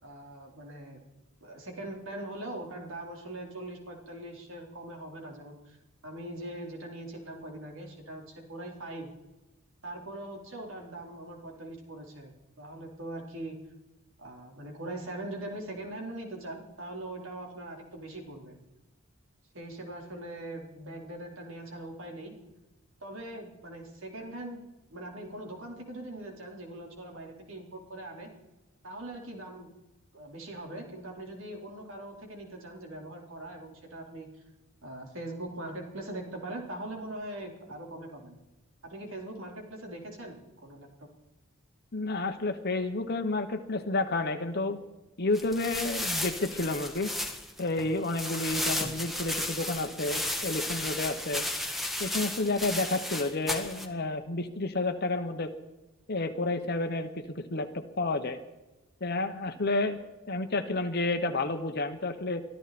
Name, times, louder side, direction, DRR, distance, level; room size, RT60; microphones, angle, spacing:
voice 1, 0.0-1.0 1.4-9.1 9.8-12.3 12.6-13.6 14.2-18.6 19.5-22.3 23.0-24.6 24.9-28.3 28.8-29.7 30.1-34.3 34.8-38.4 38.8-40.9, right 1 dB, 65° right, 1 dB, 4.0 m, -41 dB
voice 2, 41.9-44.8 45.2-47.1 47.6-51.4 52.0-55.5 56.1-58.4 59.0-60.0 60.3-62.4, left 2 dB, 50° left, 7 dB, 1.2 m, -30 dB
sound 1, 45.3-53.9, left 1 dB, ahead, 1.7 m, -34 dB
24.0 x 13.5 x 4.3 m, 1.0 s
head